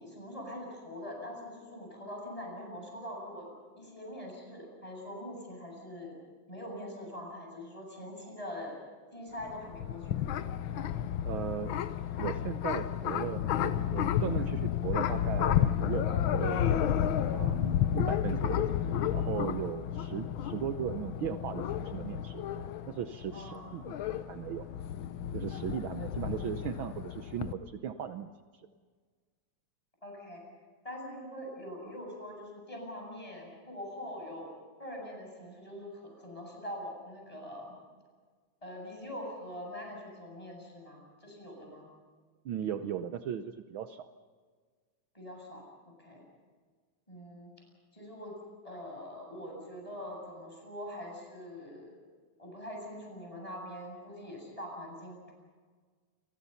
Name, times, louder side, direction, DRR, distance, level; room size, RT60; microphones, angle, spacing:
voice 1, 0.0-6.2 6.5-8.8 9.1-10.3 23.3-23.7 30.0-30.4 30.8-34.5 34.8-37.8 38.6-41.9 45.1-46.3 47.1-47.5 47.9-48.4 48.6-52.0 52.4-55.3, left 1 dB, 10° left, 0 dB, 8.0 m, -43 dB
sound 1, 9.4-27.5, left 10 dB, 75° left, 1.1 m, -32 dB
voice 2, 11.2-11.7 12.2-16.7 17.3-22.4 22.9-24.7 25.3-28.3 42.4-44.1, right 9 dB, 75° right, 9 dB, 1.1 m, -37 dB
29.0 x 23.5 x 5.7 m, 1.5 s
omnidirectional pair, 3.3 m